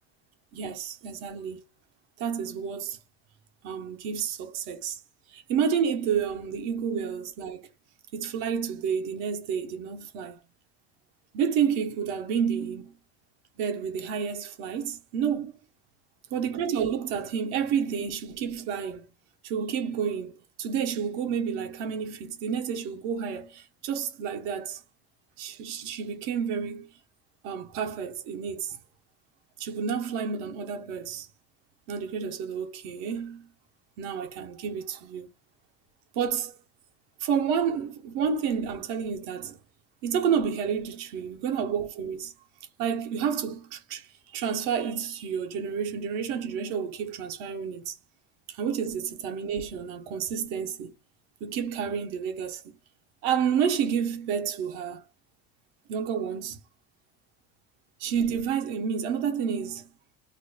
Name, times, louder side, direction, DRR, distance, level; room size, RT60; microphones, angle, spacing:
voice 1, 0.5-1.6 2.2-3.0 3.6-5.0 5.3-7.6 8.1-10.4 11.3-12.9 13.6-15.5 16.3-19.1 19.4-20.3 20.6-24.8 25.4-26.9 27.4-28.8 29.6-31.3 31.9-33.5 34.0-35.3 36.1-36.5 37.2-39.6 40.0-42.3 42.8-44.1 44.3-47.9 48.5-50.9 51.4-52.7 53.2-55.0 55.9-56.6 58.0-59.9, right 7 dB, 75° right, 1.1 m, -30 dB
2.9 x 2.3 x 4.0 m
cardioid pair, 140°, 33 cm